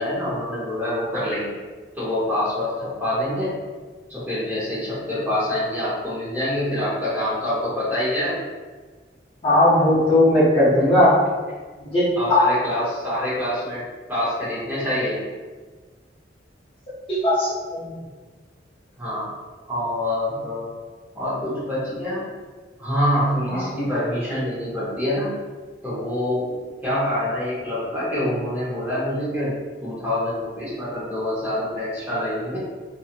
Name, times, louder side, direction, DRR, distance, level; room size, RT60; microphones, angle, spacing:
voice 1, 0.0-1.6 1.9-3.5 4.1-8.4 12.2-13.8 14.1-15.2 19.0-19.3 19.7-20.7 21.1-22.2 22.8-25.3 25.8-26.5 26.8-29.6 29.8-32.6, left 1 dB, 10° right, -11 dB, 1.0 m, -25 dB
voice 2, 9.4-11.1 11.8-12.0 12.3-12.4 17.2-17.9 23.5-23.6, left 1 dB, 30° left, -10 dB, 0.8 m, -17 dB
2.8 x 2.6 x 2.5 m, 1.4 s
head